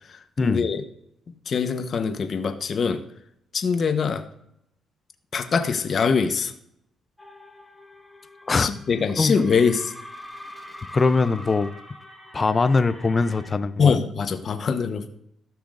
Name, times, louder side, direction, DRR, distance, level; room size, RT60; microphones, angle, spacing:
voice 1, 0.0-0.8 1.5-3.0 3.5-4.3 5.3-6.5 8.6-9.9 13.8-15.1, left 5 dB, 50° left, 7 dB, 0.9 m, -23 dB
sound 1, 7.2-13.5, left 1 dB, 5° left, 1.3 m, -44 dB
voice 2, 10.9-11.7 12.3-14.0, left 4 dB, 30° left, 12 dB, 0.5 m, -21 dB
14.0 x 6.1 x 2.5 m, 0.73 s
cardioid pair, 90°, 0 cm